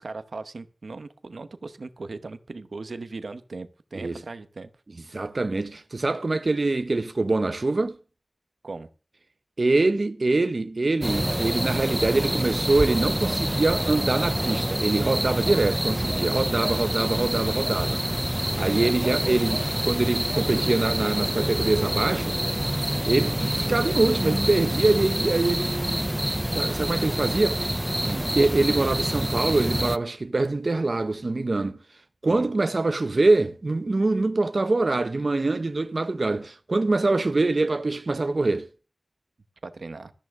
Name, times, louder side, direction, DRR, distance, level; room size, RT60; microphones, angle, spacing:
voice 1, 0.0-4.7 8.6-8.9 18.7-18.9 28.0-28.3 32.3-32.5 39.6-40.1, right 3 dB, 90° right, 0.9 m, -38 dB
voice 2, 5.1-8.0 9.6-22.7 23.0-26.1 26.5-27.7 28.3-31.8 32.2-38.7, right 2 dB, 60° right, 0.7 m, -24 dB
sound 1, 11.0-30.0, equal, 10° right, 0.5 m, -27 dB
13.5 x 12.5 x 3.6 m
wide cardioid pair, 65°, 0 cm